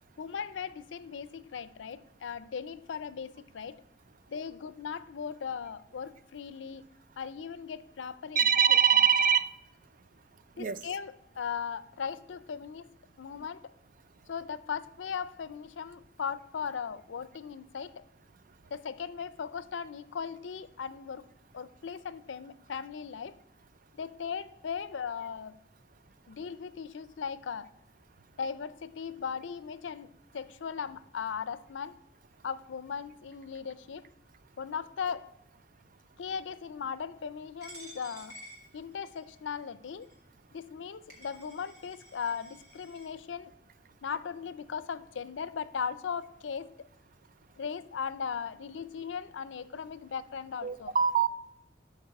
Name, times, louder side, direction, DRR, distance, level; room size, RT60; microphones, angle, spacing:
voice 1, 0.2-3.8 4.3-6.8 7.2-8.8 10.6-12.9 13.2-13.7 14.3-18.0 18.7-21.3 21.5-23.3 23.9-25.6 26.3-27.7 28.4-32.0 32.4-34.1 34.6-35.3 36.2-38.4 38.7-40.1 40.5-43.5 44.0-46.7 47.6-50.9, left 6 dB, 85° left, 0.5 m, -38 dB
voice 2, 8.4-9.5 10.6-10.8 50.6-51.3, right 7 dB, 45° right, 0.4 m, -23 dB
Coin (dropping), 37.6-39.4 40.0-40.1 40.8-40.9 41.1-43.1, equal, 60° right, 3.0 m, -51 dB
12.5 x 4.8 x 4.5 m
head